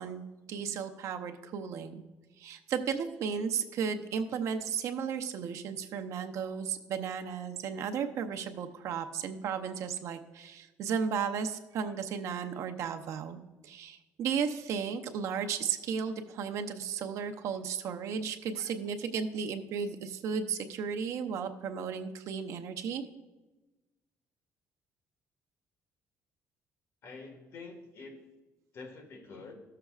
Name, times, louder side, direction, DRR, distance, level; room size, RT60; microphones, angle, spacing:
voice 1, 0.0-2.0 2.4-23.1, right 6 dB, 60° right, 7 dB, 0.6 m, -34 dB
voice 2, 27.0-28.2 28.7-29.5, left 3 dB, 50° left, 3 dB, 1.6 m, -46 dB
14.5 x 6.7 x 2.4 m, 1.1 s
cardioid pair, 140°, 6 cm